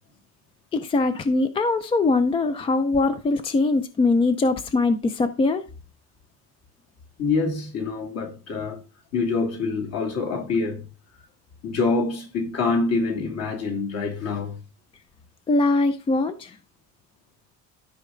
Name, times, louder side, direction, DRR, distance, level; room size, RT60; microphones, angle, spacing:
voice 1, 0.7-5.6 15.5-16.5, left 3 dB, 15° left, 0.4 m, -22 dB
voice 2, 7.2-8.8 9.1-10.9 11.6-14.6, left 4 dB, 50° left, 2.5 m, -26 dB
13.0 x 5.4 x 3.8 m
cardioid pair, 175°, 33 cm